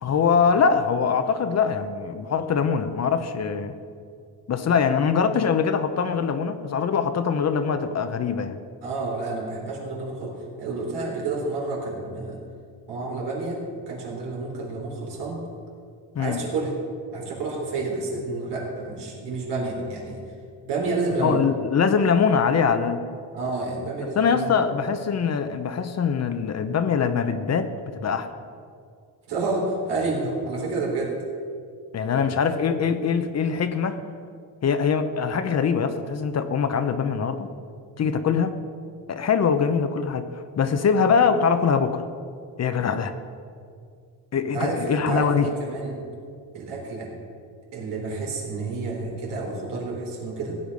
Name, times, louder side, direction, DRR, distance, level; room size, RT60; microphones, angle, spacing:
voice 1, 0.0-3.8 4.5-8.6 16.1-16.4 21.2-23.0 24.2-28.3 31.9-34.0 34.6-37.5 38.0-38.5 39.1-40.3 40.6-42.0 42.6-43.1 44.3-45.5, left 6 dB, 40° left, 9 dB, 0.8 m, -23 dB
voice 2, 8.8-12.4 12.9-15.5 16.2-16.8 17.1-20.2 20.6-21.5 23.3-24.6 29.3-31.1 32.1-32.3 44.5-46.0 46.5-47.1 47.7-50.6, right 3 dB, 75° right, -1 dB, 3.6 m, -29 dB
16.0 x 8.7 x 5.4 m, 2.3 s
cardioid pair, 115°, 41 cm